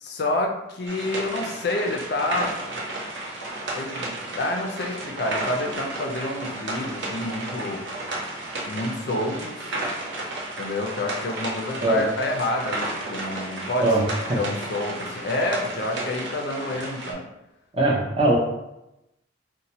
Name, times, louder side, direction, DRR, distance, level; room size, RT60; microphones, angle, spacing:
voice 1, 0.0-2.8 3.7-7.8 8.6-9.6 10.6-13.9 14.3-17.3, left 2 dB, 50° left, 2 dB, 0.4 m, -28 dB
sound 1, 0.9-17.1, right 2 dB, 65° right, 0.6 m, -33 dB
voice 2, 17.7-18.4, right 2 dB, 30° right, -2 dB, 0.6 m, -20 dB
2.7 x 2.2 x 4.0 m, 0.90 s
head